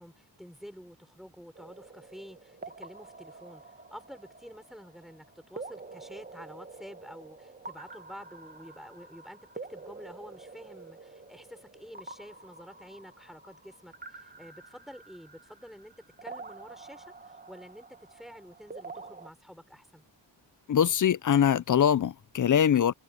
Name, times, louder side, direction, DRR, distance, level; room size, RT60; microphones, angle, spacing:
voice 1, 0.0-9.4 9.7-15.9 16.2-20.0, equal, ahead, 5.4 m, -49 dB
sound 1, 1.5-19.3, right 3 dB, 20° right, 1.4 m, -47 dB
voice 2, 20.7-22.9, left 9 dB, 45° left, 0.5 m, -23 dB
wide cardioid pair, 160°, 44 cm